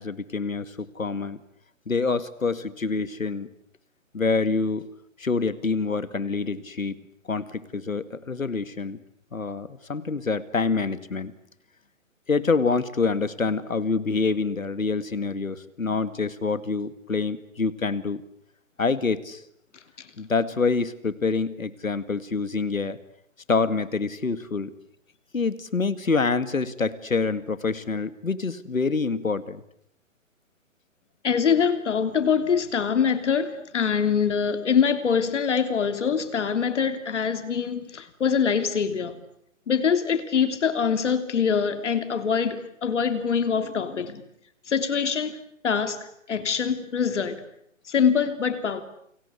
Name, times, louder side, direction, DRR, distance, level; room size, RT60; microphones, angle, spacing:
voice 1, 0.0-1.4 1.9-3.5 4.1-4.9 5.2-7.0 7.3-9.0 9.3-11.3 12.3-18.2 18.8-19.4 20.2-23.0 23.5-24.7 25.3-29.6, left 4 dB, 85° left, 14 dB, 2.1 m, -26 dB
voice 2, 31.2-39.2 39.7-44.2 44.7-45.4 45.6-46.0 46.3-47.4 47.9-48.8, left 6 dB, 60° left, 10 dB, 3.2 m, -24 dB
30.0 x 24.0 x 8.3 m, 0.71 s
figure-of-eight pair, 140°, 39 cm